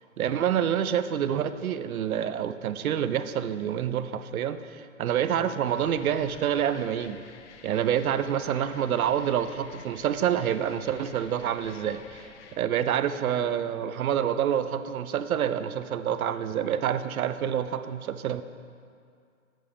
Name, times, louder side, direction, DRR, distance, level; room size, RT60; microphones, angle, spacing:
voice 1, 0.2-4.6 5.0-7.2 7.6-12.2 12.6-18.4, right 9 dB, 85° right, 12 dB, 0.6 m, -27 dB
sound 1, 5.7-12.6, left 7 dB, 60° left, 0.7 m, -50 dB
7.6 x 7.6 x 5.0 m, 2.3 s
hypercardioid pair, 140°, 41 cm